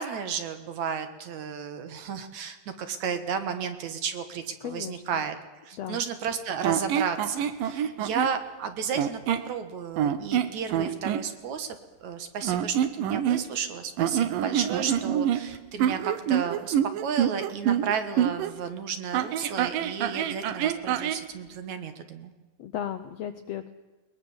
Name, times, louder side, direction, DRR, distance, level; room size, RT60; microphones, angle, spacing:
voice 1, 0.0-5.4 5.6-9.2 9.5-11.7 12.0-16.8 17.0-22.3, right 6 dB, 60° right, 9 dB, 2.6 m, -33 dB
voice 2, 4.6-5.2 5.8-6.1 22.6-23.7, left 10 dB, 75° left, 10 dB, 1.6 m, -35 dB
sound 1, 6.6-8.4 8.9-9.5 10.0-11.2 12.4-13.7 14.0-18.5 19.1-21.3, right 10 dB, 80° right, 2.7 m, -26 dB
21.5 x 20.5 x 7.2 m, 1.2 s
omnidirectional pair, 3.9 m